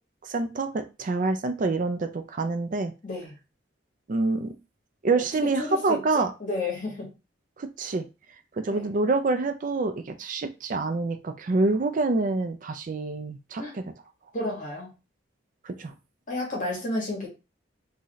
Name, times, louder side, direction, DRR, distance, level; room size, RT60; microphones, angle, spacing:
voice 1, 0.2-2.9 4.1-4.5 5.0-6.3 7.6-8.1 8.6-13.8 15.6-15.9, right 3 dB, 45° right, 8 dB, 0.4 m, -26 dB
voice 2, 3.0-3.3 5.1-7.1 8.7-8.9 13.6-13.7 14.3-14.9 16.3-17.3, left 2 dB, 45° left, -2 dB, 1.6 m, -32 dB
3.8 x 2.7 x 3.0 m, 0.28 s
head